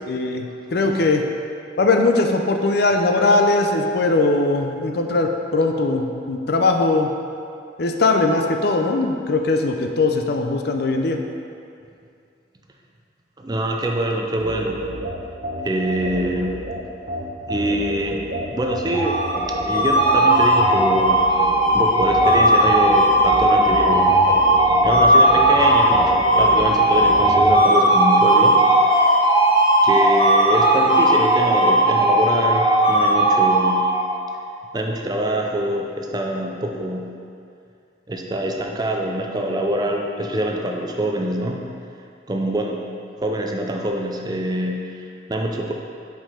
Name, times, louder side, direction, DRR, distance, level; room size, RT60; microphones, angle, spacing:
voice 1, 0.1-1.2 1.8-7.1 7.8-11.2, left 3 dB, 55° left, 4 dB, 0.5 m, -20 dB
voice 2, 13.4-14.8 15.6-16.6 17.5-18.2 18.5-19.2 19.6-21.2 21.7-24.2 24.8-29.2 29.8-33.8 34.7-37.1 38.1-41.6 42.3-42.8 43.2-45.7, right 1 dB, 20° right, 1 dB, 0.4 m, -24 dB
sound 1, 14.4-27.6, right 1 dB, 50° right, 0.9 m, -30 dB
sound 2, 18.9-34.2, right 1 dB, 25° left, 1.0 m, -16 dB
5.6 x 5.2 x 4.9 m, 2.4 s
head